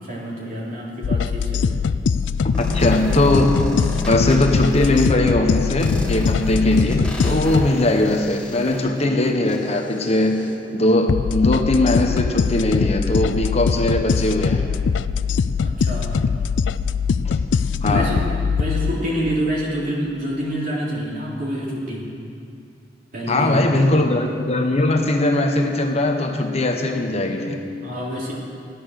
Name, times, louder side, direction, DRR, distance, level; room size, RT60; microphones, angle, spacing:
voice 1, 0.0-1.8 15.6-16.2 17.8-22.1 23.1-23.8 27.8-28.3, equal, 50° right, -4 dB, 3.3 m, -27 dB
sound 1, 1.0-7.7 11.1-18.9, left 5 dB, 75° left, 0.4 m, -22 dB
sound 2, 2.5-5.1 5.8-10.5, equal, 5° left, 1.7 m, -31 dB
voice 2, 2.6-3.6 4.1-14.7 17.2-17.4 17.8-18.1 23.3-27.6, left 1 dB, 35° left, 3 dB, 1.0 m, -20 dB
14.5 x 11.0 x 6.4 m, 2.4 s
head